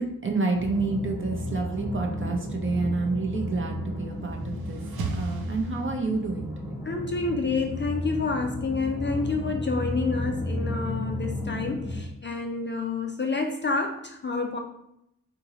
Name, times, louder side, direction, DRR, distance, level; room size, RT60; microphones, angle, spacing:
voice 1, 0.0-4.8 5.1-6.8, right 3 dB, 35° right, 2 dB, 0.7 m, -29 dB
sound 1, 0.5-12.0, left 1 dB, ahead, 0.9 m, -33 dB
sound 2, 4.0-6.4, right 4 dB, 85° right, 0.6 m, -37 dB
voice 2, 6.8-14.6, left 4 dB, 30° left, 3 dB, 0.4 m, -29 dB
3.7 x 2.7 x 2.9 m, 0.79 s
cardioid pair, 75°, 36 cm